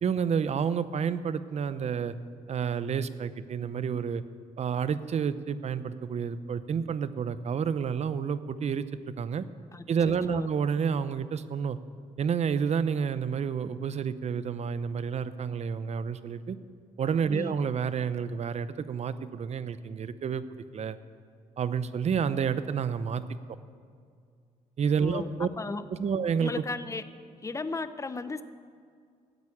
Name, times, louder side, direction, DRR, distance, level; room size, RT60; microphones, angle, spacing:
voice 1, 0.0-2.1 2.5-4.2 4.6-8.8 9.2-9.4 9.9-11.8 12.2-16.6 17.0-20.4 20.7-21.0 21.6-23.2 24.8-25.5 26.0-26.6, right 7 dB, 50° right, 14 dB, 0.7 m, -29 dB
voice 2, 9.7-10.5 17.3-17.6 25.0-25.3 25.6-25.8 26.4-27.0 27.4-28.4, left 3 dB, 20° left, 12 dB, 0.7 m, -35 dB
13.0 x 8.2 x 8.8 m, 2.2 s
cardioid pair, 85°, 14 cm